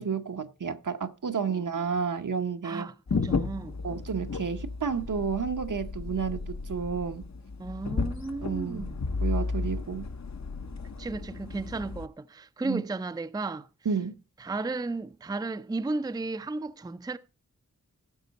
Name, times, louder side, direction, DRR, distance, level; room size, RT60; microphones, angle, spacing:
voice 1, 0.0-2.9 3.8-7.2 8.4-8.9 9.2-10.1 12.6-12.8 13.8-14.1, right 6 dB, 70° right, 0.9 m, -31 dB
voice 2, 2.6-3.8 7.6-9.0 11.0-13.7 14.4-17.2, right 3 dB, 10° right, 0.4 m, -34 dB
sound 1, 3.1-12.1, left 4 dB, 55° left, 0.8 m, -33 dB
15.0 x 6.2 x 4.0 m
wide cardioid pair, 70°, 33 cm